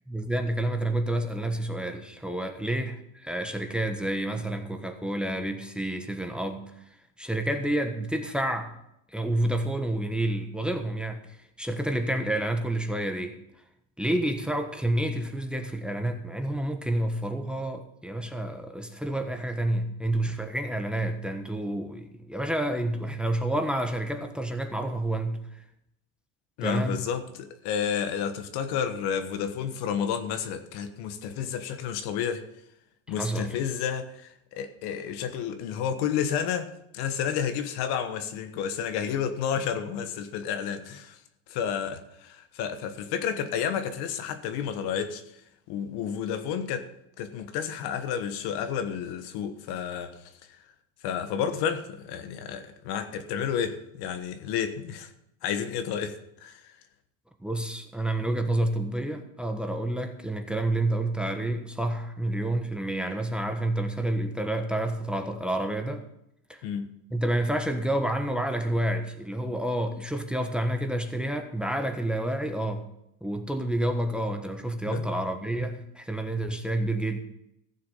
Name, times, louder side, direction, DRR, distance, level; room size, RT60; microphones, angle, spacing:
voice 1, 0.1-6.6 7.2-8.7 9.1-13.4 14.0-25.6 26.6-27.0 33.2-33.6 57.4-66.0 66.5-66.6 67.1-72.8 73.2-77.2, right 1 dB, ahead, 1.2 m, -29 dB
voice 2, 26.6-32.4 33.1-41.2 41.5-45.2 45.7-46.9 47.2-50.1 51.0-55.1 55.4-56.6 66.6-66.9 74.9-75.1, left 8 dB, 60° left, 1.4 m, -31 dB
15.5 x 6.9 x 5.6 m
supercardioid pair, 105°, 43 cm